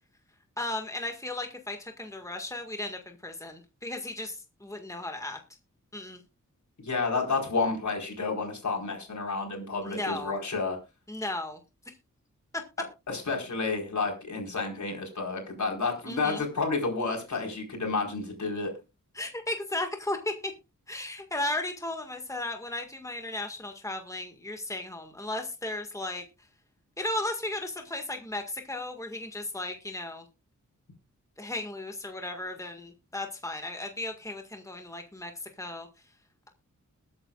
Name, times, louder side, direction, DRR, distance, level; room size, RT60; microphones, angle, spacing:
voice 1, 0.6-5.4 5.9-6.2 9.9-10.4 11.1-11.6 16.1-16.4 19.2-20.5 20.9-26.2 27.0-30.2 31.4-35.9, left 2 dB, 10° left, 4 dB, 1.8 m, -35 dB
voice 2, 6.8-10.8 13.1-18.7, left 4 dB, 65° left, 1 dB, 4.6 m, -30 dB
21.0 x 8.8 x 2.4 m, 0.27 s
wide cardioid pair, 90°, 31 cm